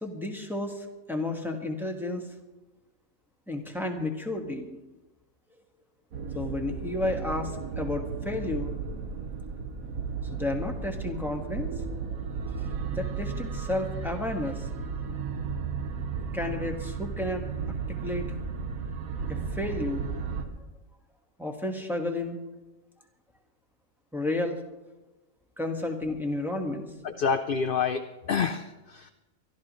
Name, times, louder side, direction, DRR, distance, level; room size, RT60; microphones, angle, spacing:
voice 1, 0.0-2.2 3.5-4.8 6.3-8.7 10.3-11.7 12.9-14.7 16.3-17.4 18.0-18.3 19.3-20.1 21.4-22.4 24.1-24.6 25.6-26.9, left 2 dB, ahead, 1 dB, 1.5 m, -32 dB
sound 1, 6.1-20.4, right 5 dB, 90° right, 1.7 m, -34 dB
voice 2, 27.0-29.1, left 6 dB, 55° left, 9 dB, 0.6 m, -28 dB
24.0 x 12.5 x 3.1 m, 1.1 s
omnidirectional pair, 1.4 m